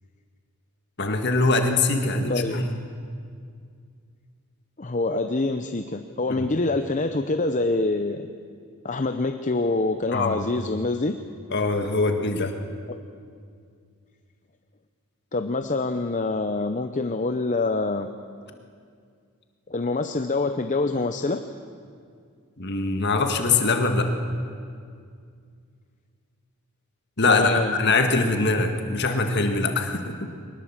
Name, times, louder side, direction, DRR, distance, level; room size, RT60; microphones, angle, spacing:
voice 1, 1.0-2.8 10.1-10.4 11.5-12.6 22.6-24.1 27.2-30.3, left 3 dB, 50° left, 5 dB, 1.8 m, -23 dB
voice 2, 2.3-2.6 4.8-8.3 8.8-11.2 12.9-13.0 15.3-18.1 19.7-21.4 27.3-27.8, left 3 dB, 35° left, 7 dB, 0.7 m, -25 dB
22.5 x 20.0 x 7.4 m, 2.2 s
head